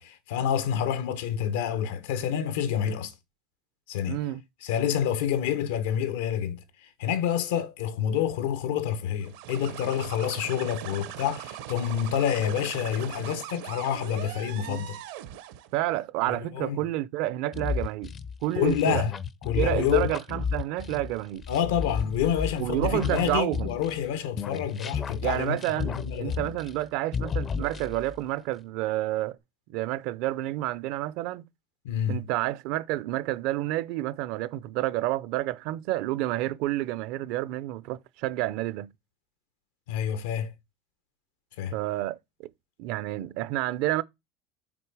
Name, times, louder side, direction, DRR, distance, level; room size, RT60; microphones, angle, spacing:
voice 1, 0.0-3.1 3.9-4.2 4.6-15.0 16.3-16.8 18.5-19.1 19.4-20.1 21.5-26.4 31.8-32.3 39.9-40.5 41.6-41.8, left 9 dB, 85° left, 1.0 m, -28 dB
voice 2, 4.1-4.4 14.7-14.8 15.7-18.1 18.4-19.0 19.6-21.4 22.6-23.7 25.2-29.4 29.7-31.5 32.1-38.9 41.7-42.2 42.8-44.0, right 16 dB, 60° right, 0.4 m, -29 dB
sound 1, 9.2-15.8, right 12 dB, 75° right, 0.8 m, -40 dB
sound 2, 17.5-24.1 24.4-26.9 27.1-28.2, left 6 dB, 25° left, 0.4 m, -32 dB
6.0 x 4.0 x 4.7 m
supercardioid pair, 150°, 0 cm